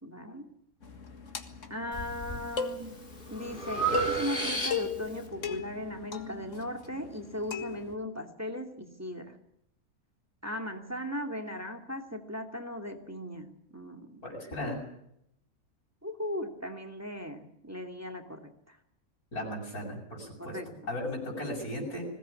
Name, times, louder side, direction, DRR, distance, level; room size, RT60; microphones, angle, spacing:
voice 1, 0.0-0.5 1.7-3.0 3.3-9.4 10.4-14.3 16.0-18.8 20.4-20.9, left 1 dB, 10° right, 4 dB, 2.4 m, -38 dB
sound 1, 0.8-8.0, left 2 dB, 55° left, 2.1 m, -38 dB
Breathing, 1.9-2.4 2.9-5.1, right 3 dB, 35° left, 3.8 m, -32 dB
voice 2, 14.2-14.8 19.3-20.6 20.9-22.1, left 1 dB, 90° left, -2 dB, 7.5 m, -36 dB
21.0 x 18.0 x 9.8 m, 0.76 s
omnidirectional pair, 1.5 m